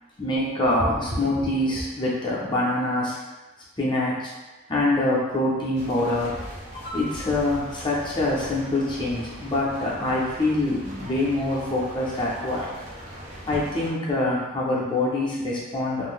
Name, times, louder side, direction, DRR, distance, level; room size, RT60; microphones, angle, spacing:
voice 1, 0.2-3.2 3.8-4.3 4.7-6.4 6.7-12.7 13.5-16.1, left 1 dB, 25° left, -6 dB, 0.5 m, -25 dB
sound 1, 5.7-13.9, equal, 35° right, 0.5 m, -40 dB
2.5 x 2.1 x 3.5 m, 1.1 s
head